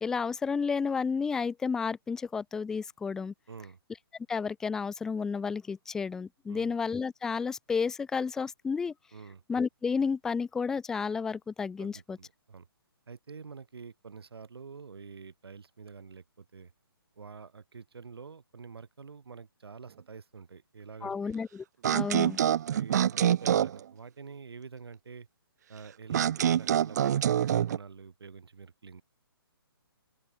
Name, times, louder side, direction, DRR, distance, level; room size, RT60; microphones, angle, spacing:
voice 1, 0.0-3.3 4.3-8.9 9.5-12.2 21.0-21.6 21.9-22.4, left 5 dB, 5° left, 0.4 m, -31 dB
voice 2, 3.5-3.8 6.5-6.7 9.1-9.4 11.8-12.7 13.1-16.7 17.2-21.3 22.1-22.3 22.7-25.3 25.7-29.0, right 5 dB, 75° right, 6.3 m, -47 dB
sound 1, 21.8-23.8 26.1-27.8, right 10 dB, 45° right, 0.6 m, -26 dB
open air
hypercardioid pair, 155°, 13 cm